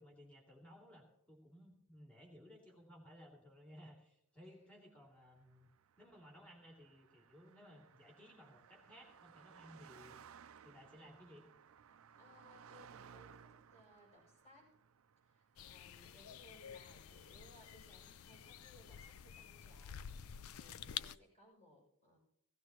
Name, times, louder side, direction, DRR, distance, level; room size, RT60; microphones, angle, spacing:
voice 1, 0.0-5.7 6.0-10.2 10.6-11.4, equal, 5° left, -2 dB, 2.7 m, -59 dB
Car passing by, 5.3-16.8, right 7 dB, 70° right, 0.4 m, -61 dB
voice 2, 12.2-14.7 15.2-22.2, left 1 dB, 30° left, -3 dB, 6.7 m, -64 dB
sound 1, 15.6-21.2, left 9 dB, 75° left, 0.4 m, -50 dB
16.5 x 16.0 x 3.0 m, 0.74 s
head